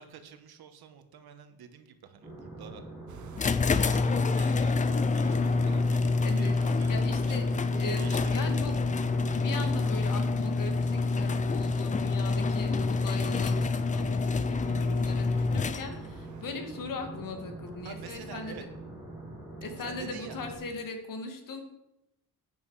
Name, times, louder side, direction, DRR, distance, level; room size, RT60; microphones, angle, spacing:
voice 1, 0.0-2.8 3.7-6.9 7.3-7.4 7.9-9.0 17.8-18.6 19.8-20.4, right 7 dB, 80° right, 8 dB, 1.4 m, -47 dB
sound 1, 2.2-20.5, right 2 dB, 10° right, 4.1 m, -44 dB
sound 2, 3.1-16.5, right 10 dB, 50° right, 0.7 m, -48 dB
sound 3, 3.4-16.2, left 3 dB, 20° left, 0.3 m, -27 dB
voice 2, 6.2-7.5 7.7-8.8 9.3-18.6 19.6-21.6, left 3 dB, 60° left, 5 dB, 2.0 m, -39 dB
11.5 x 9.1 x 4.8 m, 0.89 s
wide cardioid pair, 160°, 37 cm